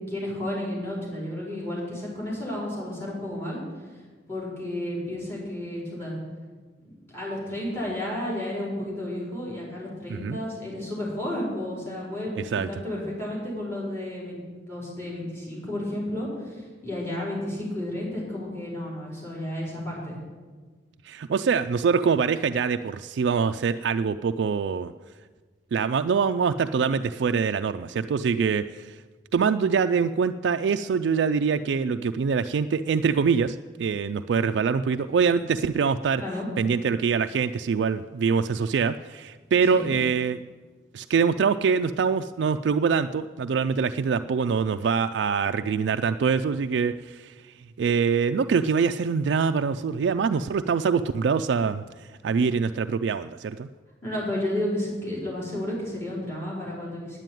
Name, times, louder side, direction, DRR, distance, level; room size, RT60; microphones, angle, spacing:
voice 1, 0.1-3.6 4.3-6.2 6.8-14.4 14.7-20.2 36.2-36.5 39.7-39.9 54.0-57.2, left 1 dB, 15° left, -5 dB, 4.9 m, -32 dB
voice 2, 12.4-12.7 21.0-24.9 25.7-29.0 29.3-36.2 36.6-40.4 40.9-47.3 47.8-51.8 52.2-53.7, right 6 dB, 80° right, 9 dB, 0.3 m, -24 dB
9.8 x 9.2 x 9.1 m, 1.4 s
head